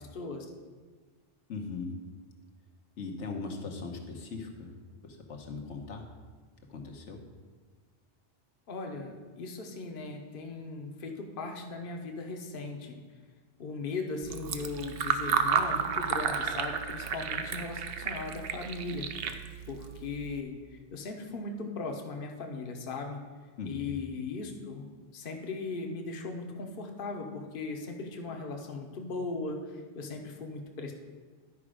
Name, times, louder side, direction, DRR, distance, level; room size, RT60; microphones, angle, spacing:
voice 1, 0.1-0.5 8.7-13.0 13.6-19.1 19.7-20.5 20.9-23.2 23.6-24.8 25.1-29.6 29.9-30.9, left 3 dB, 50° left, 3 dB, 1.0 m, -38 dB
voice 2, 1.5-2.0 3.0-4.7 5.0-6.0 6.7-7.2 23.6-23.9, left 4 dB, 75° left, 2 dB, 1.3 m, -39 dB
Fill (with liquid), 14.2-20.4, right 6 dB, 60° right, 0.7 m, -32 dB
11.0 x 4.9 x 5.0 m, 1.4 s
omnidirectional pair, 1.2 m